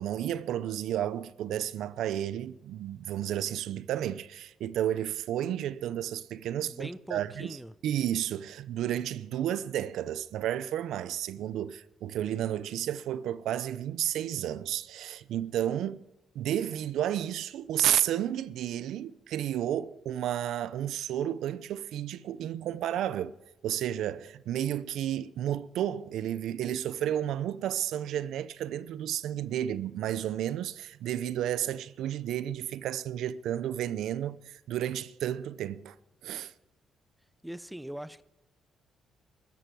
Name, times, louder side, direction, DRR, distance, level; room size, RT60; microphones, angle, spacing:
voice 1, 0.0-7.6 7.8-16.0 16.3-23.3 23.6-36.0 36.2-36.5, right 11 dB, 80° right, 0.6 m, -32 dB
voice 2, 6.6-7.8 37.4-38.2, right 1 dB, 5° right, 0.7 m, -41 dB
14.5 x 12.0 x 7.8 m
cardioid pair, 90°, 0 cm